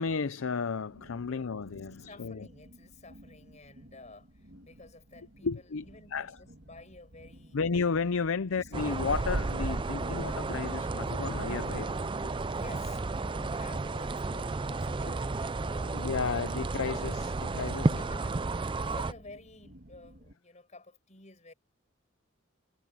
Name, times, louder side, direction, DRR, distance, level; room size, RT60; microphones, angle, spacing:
voice 1, 0.0-2.5 5.4-6.4 7.5-12.3 15.9-18.0, left 5 dB, 75° left, 0.6 m, -33 dB
sound 1, 0.8-20.3, right 1 dB, 55° right, 2.3 m, -54 dB
voice 2, 1.3-1.7 2.0-5.5 5.9-7.6 8.5-8.8 12.3-16.1 17.6-21.5, left 2 dB, 35° left, 5.8 m, -52 dB
sound 2, 8.7-19.1, right 3 dB, 25° right, 0.4 m, -32 dB
head